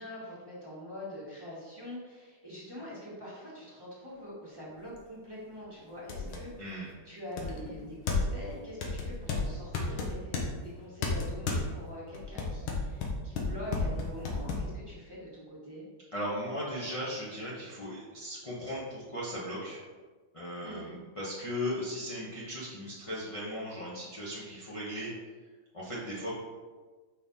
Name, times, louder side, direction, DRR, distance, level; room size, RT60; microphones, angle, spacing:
voice 1, 0.0-15.8 20.6-21.0, equal, 15° right, -8 dB, 1.5 m, -44 dB
sound 1, 5.0-5.1 5.6-5.7 6.1-6.5 7.4-8.4 8.8-10.5 11.0-11.7 12.1-14.6, left 4 dB, 85° left, 1.8 m, -32 dB
voice 2, 6.6-6.9 16.1-19.8 20.3-25.1 25.7-26.3, equal, 20° left, -8 dB, 0.9 m, -37 dB
5.5 x 4.9 x 4.1 m, 1.4 s
omnidirectional pair, 2.2 m